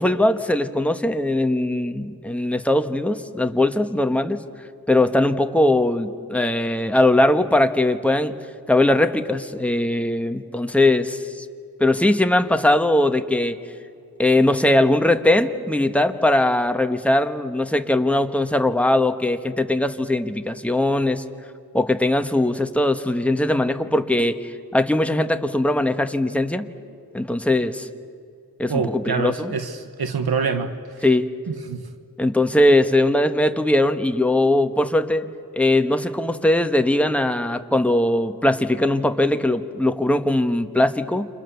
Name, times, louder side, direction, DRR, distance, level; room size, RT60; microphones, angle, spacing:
voice 1, 0.0-4.4 4.9-8.4 8.7-11.4 11.8-13.6 14.2-21.2 21.7-26.7 27.1-27.9 28.6-29.5 31.0-31.3 32.2-35.3 35.5-41.3, left 1 dB, 5° left, 7 dB, 1.4 m, -20 dB
voice 2, 28.7-31.1 31.5-31.8, right 5 dB, 85° right, 8 dB, 1.5 m, -26 dB
30.0 x 27.0 x 7.1 m, 2.4 s
wide cardioid pair, 90°, 36 cm